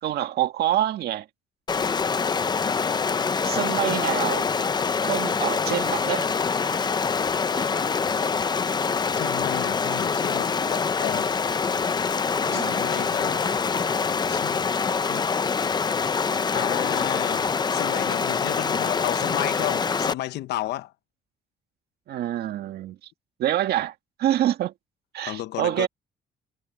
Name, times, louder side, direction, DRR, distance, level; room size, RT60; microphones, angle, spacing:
voice 1, 0.0-1.3 3.4-4.5 5.0-6.3 12.4-12.8 22.1-23.0 23.4-24.7 25.1-25.9, right 12 dB, 70° right, 1.8 m, -26 dB
Stream, 1.7-20.1, left 5 dB, 25° left, 0.7 m, -25 dB
voice 2, 9.1-11.3 12.5-13.7 14.3-14.6 15.1-15.3 16.5-20.9 25.3-25.9, left 15 dB, 80° left, 1.1 m, -32 dB
cardioid pair, 115°, 17 cm